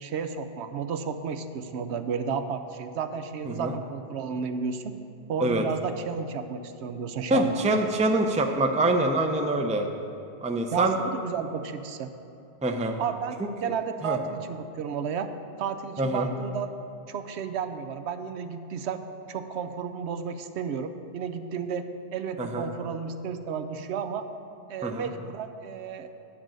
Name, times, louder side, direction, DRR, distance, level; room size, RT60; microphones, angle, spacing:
voice 1, 0.0-4.9 5.3-7.8 10.7-12.1 13.0-15.3 15.6-16.7 17.1-19.0 19.3-24.3 24.7-26.1, right 6 dB, 80° right, 9 dB, 0.9 m, -32 dB
voice 2, 7.3-9.9 10.4-10.9 12.6-13.0 13.6-13.7 14.0-14.2 16.0-16.3 22.4-22.6 24.8-25.1, right 2 dB, 10° right, 4 dB, 0.3 m, -25 dB
10.0 x 5.2 x 7.4 m, 2.8 s
omnidirectional pair, 1.1 m